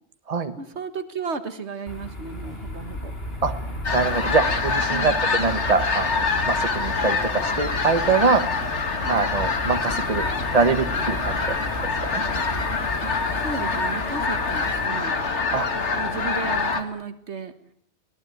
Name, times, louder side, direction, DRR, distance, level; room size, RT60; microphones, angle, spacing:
voice 1, 0.6-3.1 4.9-5.2 9.0-9.3 13.0-15.2 15.9-17.5, right 5 dB, 70° right, 10 dB, 1.8 m, -34 dB
sound 1, 1.9-14.9, left 1 dB, 55° left, 3.7 m, -35 dB
sound 2, 3.8-16.8, left 4 dB, 75° left, 2.1 m, -25 dB
voice 2, 3.9-8.4 9.1-10.2 10.5-11.6 12.1-12.2 15.5-15.7, right 4 dB, 35° right, 8 dB, 1.5 m, -23 dB
24.0 x 18.5 x 9.3 m, 0.72 s
omnidirectional pair, 1.2 m